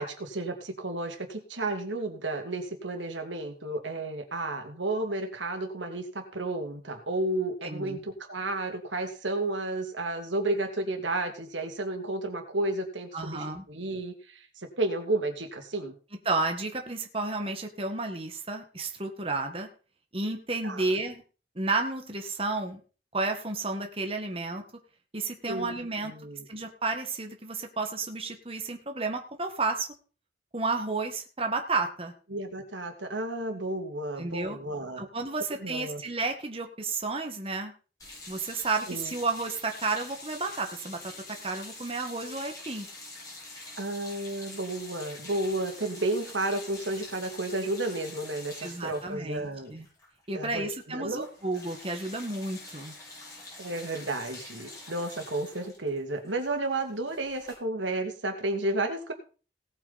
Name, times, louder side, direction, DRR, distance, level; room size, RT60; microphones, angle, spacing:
voice 1, 0.0-16.0 20.6-20.9 25.5-25.8 26.0-26.5 32.3-35.0 35.6-36.0 38.9-39.1 43.8-49.7 50.3-51.3 53.6-59.1, right 2 dB, 90° right, 5 dB, 2.6 m, -32 dB
voice 2, 7.6-8.0 13.1-13.6 16.3-19.7 20.1-21.2 21.6-22.8 23.1-24.6 25.1-26.1 26.5-29.9 30.5-32.1 34.2-34.6 35.0-37.7 38.3-42.9 48.6-49.9 50.3-52.9, right 3 dB, 30° right, 4 dB, 1.8 m, -32 dB
sound 1, 38.0-50.4 50.6-50.8 51.1-57.5, left 2 dB, 20° left, 7.5 m, -46 dB
18.0 x 8.8 x 4.3 m, 0.36 s
head